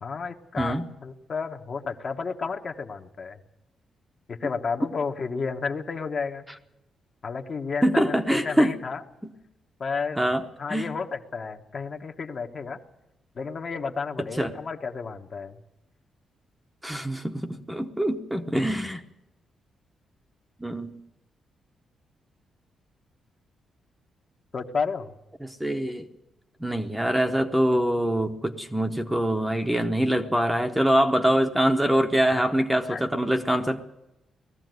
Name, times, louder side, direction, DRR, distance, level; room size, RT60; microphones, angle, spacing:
voice 1, 0.0-3.4 4.3-6.4 7.2-9.0 9.8-10.2 10.6-12.8 13.3-15.6 24.5-25.1 32.3-32.4 32.9-33.0, left 5 dB, 35° left, 5 dB, 1.3 m, -32 dB
voice 2, 0.6-0.9 7.8-8.7 9.2-9.3 10.2-10.9 14.4-14.5 16.8-19.0 20.6-20.9 25.4-26.1 26.6-33.8, right 1 dB, 5° right, 5 dB, 1.0 m, -24 dB
19.5 x 15.0 x 9.3 m, 0.89 s
wide cardioid pair, 175°, 0 cm